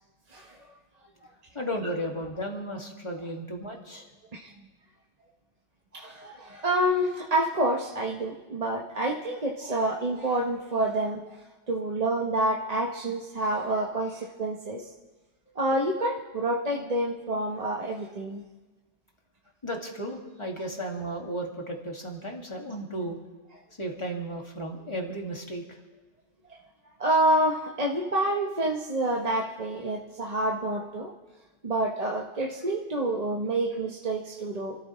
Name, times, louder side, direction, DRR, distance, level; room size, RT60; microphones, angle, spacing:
voice 1, 1.5-4.1 19.6-23.2 23.8-25.6, right 1 dB, 25° left, 0 dB, 2.1 m, -34 dB
voice 2, 5.9-11.2 11.7-14.8 15.6-18.4 27.0-31.1 31.6-34.8, right 1 dB, 35° right, -1 dB, 1.0 m, -28 dB
29.0 x 13.5 x 3.1 m, 1.2 s
omnidirectional pair, 1.2 m